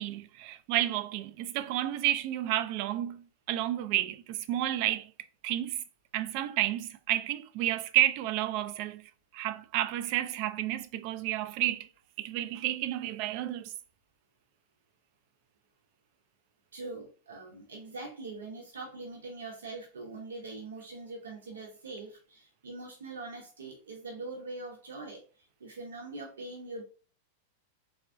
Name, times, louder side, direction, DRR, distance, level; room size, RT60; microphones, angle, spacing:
voice 1, 0.0-3.2 3.5-5.1 5.4-5.8 6.1-9.0 9.3-11.9 12.2-13.7, right 13 dB, 50° right, 0.3 m, -31 dB
voice 2, 16.7-25.2 25.6-26.8, right 3 dB, 80° right, 0.8 m, -42 dB
3.6 x 2.0 x 2.5 m
hypercardioid pair, 95°, 0 cm